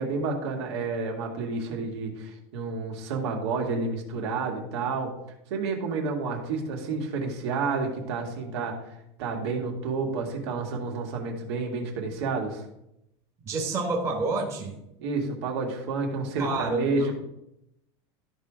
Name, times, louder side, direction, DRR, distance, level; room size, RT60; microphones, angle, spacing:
voice 1, 0.0-5.1 5.5-8.9 9.2-12.6 15.0-17.1, right 4 dB, 75° right, 1 dB, 2.3 m, -30 dB
voice 2, 13.5-14.8 16.4-17.1, right 3 dB, 20° right, -1 dB, 1.3 m, -28 dB
13.5 x 4.9 x 3.8 m, 0.82 s
supercardioid pair, 170°, 14 cm